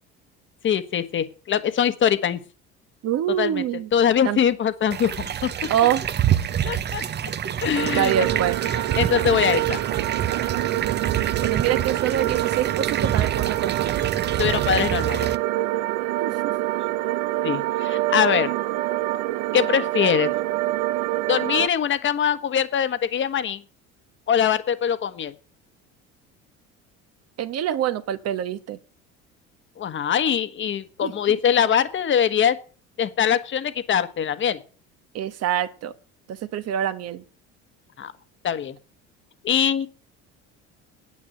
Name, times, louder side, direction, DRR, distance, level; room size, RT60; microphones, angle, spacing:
voice 1, 0.6-2.4 3.4-3.6 3.9-5.5 6.6-7.1 7.6-8.1 9.0-9.8 14.4-15.3 17.4-18.5 19.5-20.3 21.3-23.6 24.3-25.3 29.8-32.6 33.0-34.6 38.0-38.1 38.4-38.8 39.4-39.9, left 8 dB, 40° left, 12 dB, 1.4 m, -22 dB
voice 2, 3.0-3.9 4.2-4.4 5.7-6.0 8.0-8.6 11.4-14.0 16.2-16.5 27.4-28.8 31.0-31.1 35.1-35.9 36.3-37.2, right 10 dB, 55° right, 12 dB, 1.3 m, -25 dB
sound 1, 4.9-15.4, right 9 dB, 35° right, 0.8 m, -27 dB
sound 2, 7.8-21.7, right 16 dB, 80° right, 0.7 m, -26 dB
9.7 x 8.6 x 7.8 m, 0.39 s
supercardioid pair, 105°, 30 cm